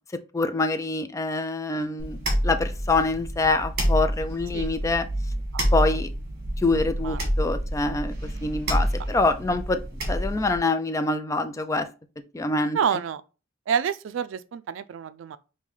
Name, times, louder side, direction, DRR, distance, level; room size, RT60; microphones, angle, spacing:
voice 1, 0.3-5.1 5.7-6.1 6.6-9.8 10.1-11.9 12.3-12.8, left 3 dB, 15° left, 0.3 m, -25 dB
sound 1, 2.0-10.6, equal, 55° right, 1.5 m, -28 dB
voice 2, 12.7-13.2 13.7-15.4, right 7 dB, 80° right, 0.3 m, -28 dB
5.4 x 2.2 x 3.2 m
head